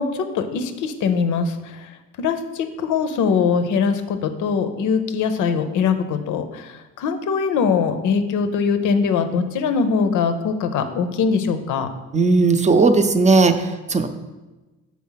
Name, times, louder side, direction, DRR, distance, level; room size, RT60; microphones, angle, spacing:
voice 1, 0.0-11.9, left 5 dB, 85° left, 8 dB, 0.7 m, -22 dB
voice 2, 12.1-14.1, right 3 dB, 25° right, 8 dB, 0.6 m, -16 dB
6.0 x 4.2 x 5.6 m, 1.1 s
cardioid pair, 90°, 30 cm